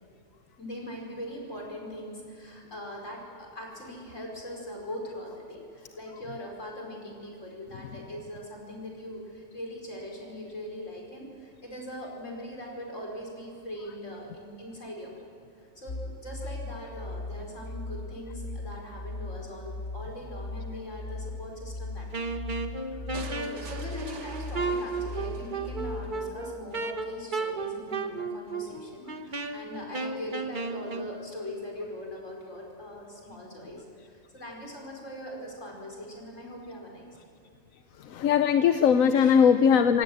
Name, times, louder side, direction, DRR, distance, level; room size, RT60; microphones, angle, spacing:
voice 1, 0.6-15.2 15.6-37.2 39.1-39.3, equal, 65° left, -1 dB, 5.5 m, -41 dB
sound 1, 15.9-26.2, left 2 dB, 35° left, 0.9 m, -38 dB
Wind instrument woodwind instrument, 22.1-31.1, right 3 dB, 40° right, 1.2 m, -34 dB
sound 2, 23.1-26.1, right 4 dB, 60° right, 1.8 m, -46 dB
voice 2, 38.0-40.0, left 7 dB, 85° left, 10 dB, 1.2 m, -20 dB
27.0 x 17.5 x 7.9 m, 2.5 s
omnidirectional pair, 1.4 m